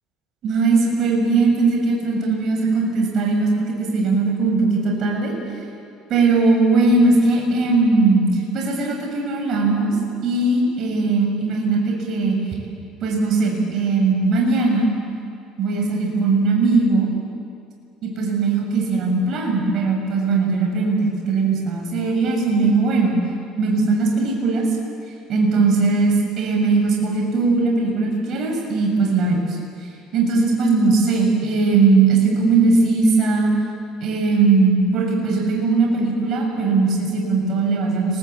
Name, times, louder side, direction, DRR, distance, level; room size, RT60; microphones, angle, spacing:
voice 1, 0.4-5.4 6.1-10.0 10.2-12.4 13.0-14.9 15.6-17.1 18.0-23.1 23.6-24.7 25.3-29.6 30.1-33.5 34.0-38.2, right 3 dB, 50° right, 0 dB, 7.1 m, -19 dB
29.5 x 22.0 x 8.3 m, 2.4 s
cardioid pair, 130°, 0 cm